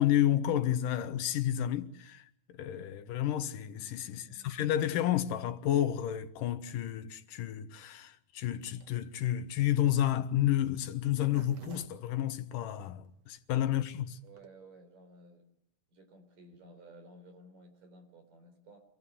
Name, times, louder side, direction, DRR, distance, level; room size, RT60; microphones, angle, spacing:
voice 1, 0.0-14.2, left 11 dB, 85° left, 2.8 m, -31 dB
voice 2, 4.1-4.6 14.2-15.4 15.9-18.8, right 2 dB, 90° right, 6.3 m, -55 dB
Zipper (clothing), 8.7-13.1 13.6-13.7 13.8-13.9 14.1-14.5, right 9 dB, 55° right, 2.3 m, -53 dB
27.0 x 17.5 x 9.9 m
omnidirectional pair, 3.7 m